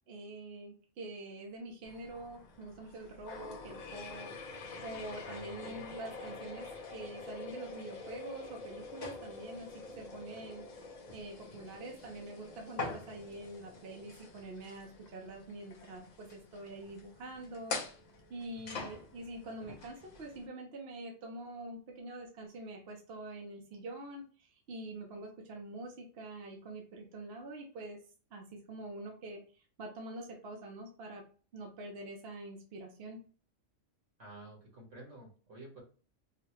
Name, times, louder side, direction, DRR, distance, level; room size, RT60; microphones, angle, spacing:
voice 1, 0.1-4.3 4.8-9.7 10.0-10.6 11.1-17.8 18.3-28.0 28.3-31.2 31.5-33.2, right 2 dB, 60° right, 2 dB, 0.9 m, -45 dB
sound 1, 1.8-20.5, left 3 dB, 45° left, 0.6 m, -46 dB
voice 2, 5.2-5.9 18.5-18.8 34.2-35.8, right 2 dB, 75° right, -2 dB, 1.8 m, -51 dB
3.9 x 2.2 x 2.9 m, 0.39 s
omnidirectional pair, 1.3 m